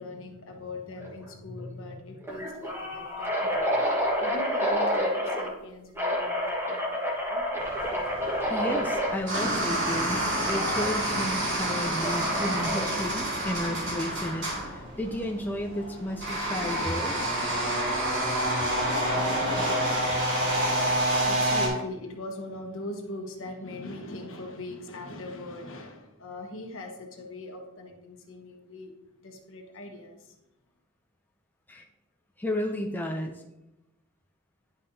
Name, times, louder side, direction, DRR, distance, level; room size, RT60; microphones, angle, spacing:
voice 1, 0.0-7.4 20.9-28.9 29.2-30.3, left 2 dB, 60° left, 2 dB, 1.2 m, -41 dB
sound 1, 1.0-1.3 1.6-1.7 2.2-5.5 5.9-9.1 10.5-10.9 12.0-13.0, equal, 10° right, 1.4 m, -29 dB
sound 2, 7.6-21.7, right 1 dB, 55° right, 2.5 m, -28 dB
voice 2, 8.5-17.2 31.7-31.9 32.4-33.4, left 1 dB, 10° left, 1 dB, 0.4 m, -33 dB
10.5 x 5.5 x 2.7 m, 0.97 s
head